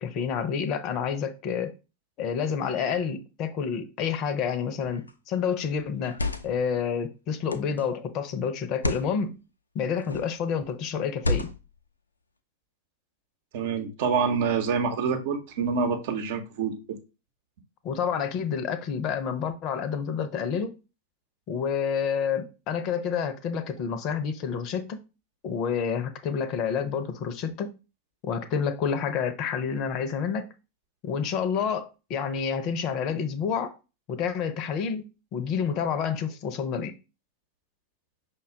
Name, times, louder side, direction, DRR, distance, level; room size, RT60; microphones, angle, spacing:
voice 1, 0.0-1.7 2.2-6.2 6.4-9.4 9.7-11.5 17.8-20.8 21.5-25.0 25.4-27.7 28.2-30.5 31.0-33.7 34.1-36.9, left 7 dB, 40° left, 0.6 m, -29 dB
sound 1, 4.8-5.1 5.9-6.7 7.5-7.8 8.7-9.1 10.0-10.4 11.2-11.8, left 2 dB, 80° left, 0.4 m, -31 dB
voice 2, 13.5-16.8, right 6 dB, 50° right, 0.8 m, -26 dB
5.5 x 2.2 x 3.7 m
figure-of-eight pair, 90°, 0 cm